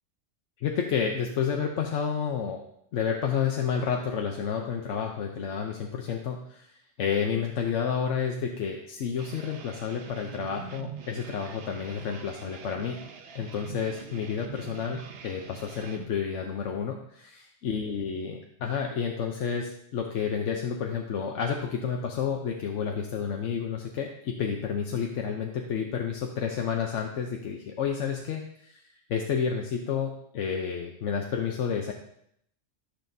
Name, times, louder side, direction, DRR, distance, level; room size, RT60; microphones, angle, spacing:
voice 1, 0.6-2.6 2.9-13.0 13.3-31.9, left 7 dB, 80° left, 2 dB, 1.1 m, -30 dB
sound 1, 9.2-16.1, right 7 dB, 60° right, 0.9 m, -44 dB
14.0 x 6.5 x 2.7 m, 0.72 s
omnidirectional pair, 1.2 m